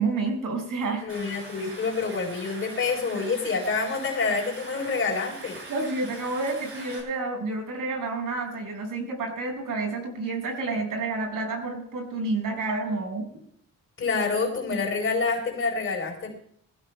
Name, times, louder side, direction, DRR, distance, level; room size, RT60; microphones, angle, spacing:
voice 1, 0.0-1.1 5.7-13.2, right 3 dB, 70° right, 3 dB, 6.0 m, -29 dB
voice 2, 1.0-5.6 14.0-16.4, left 4 dB, 40° left, 0 dB, 4.0 m, -27 dB
Stream, 1.1-7.0, right 2 dB, 40° right, 6.6 m, -42 dB
23.0 x 16.0 x 2.3 m, 0.65 s
wide cardioid pair, 180°, 34 cm